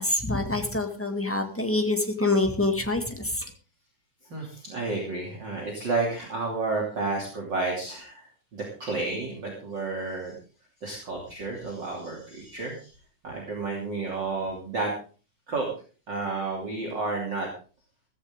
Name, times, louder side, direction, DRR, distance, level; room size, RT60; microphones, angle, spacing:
voice 1, 0.0-3.5, left 2 dB, 5° left, 4 dB, 1.1 m, -26 dB
voice 2, 4.3-8.3 8.5-10.4 10.8-12.9 13.2-14.9 15.5-15.7 16.1-17.5, right 3 dB, 35° right, -1 dB, 3.4 m, -31 dB
15.5 x 15.0 x 3.7 m, 0.37 s
omnidirectional pair, 3.6 m